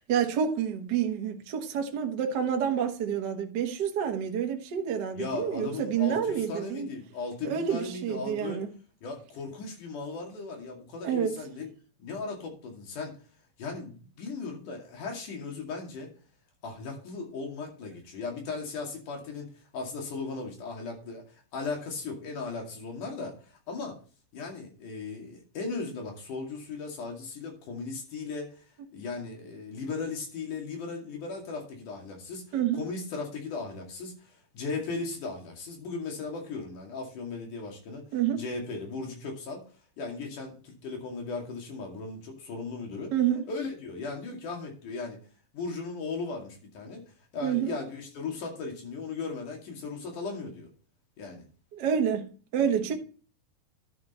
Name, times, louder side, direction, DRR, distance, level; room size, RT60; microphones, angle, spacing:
voice 1, 0.0-6.9 7.4-8.7 11.0-11.3 32.5-32.8 38.1-38.4 43.1-43.4 47.4-47.7 51.7-52.2 52.5-52.9, right 8 dB, 85° right, 0.9 m, -28 dB
voice 2, 5.1-8.6 9.0-11.7 12.0-13.2 13.6-16.1 16.6-24.0 24.3-38.1 38.3-39.6 40.0-43.1 43.5-45.2 45.5-50.7 51.2-51.5, left 4 dB, 65° left, 3.8 m, -37 dB
11.5 x 6.1 x 4.3 m
omnidirectional pair, 4.0 m